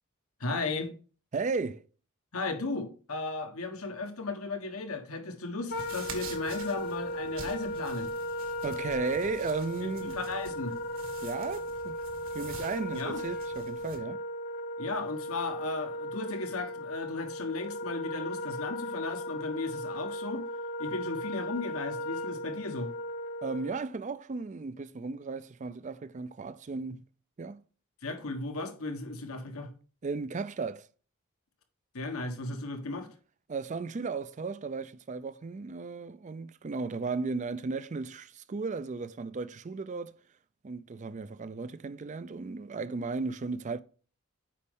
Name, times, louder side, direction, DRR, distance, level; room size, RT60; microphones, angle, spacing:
voice 1, 0.4-0.9 2.3-8.1 9.8-10.8 12.9-13.2 14.8-20.5 20.8-22.9 28.0-29.7 31.9-33.1, left 3 dB, 85° left, 1.3 m, -35 dB
voice 2, 1.3-1.8 8.6-10.2 11.2-12.0 12.3-14.2 23.4-27.0 27.4-27.6 30.0-30.9 33.5-40.1 40.6-43.8, right 4 dB, 35° right, 0.4 m, -35 dB
Wind instrument woodwind instrument, 5.7-23.8, left 1 dB, 50° left, 0.9 m, -37 dB
sound 1, 5.7-14.0, right 4 dB, 70° right, 1.7 m, -47 dB
8.4 x 5.3 x 3.7 m
head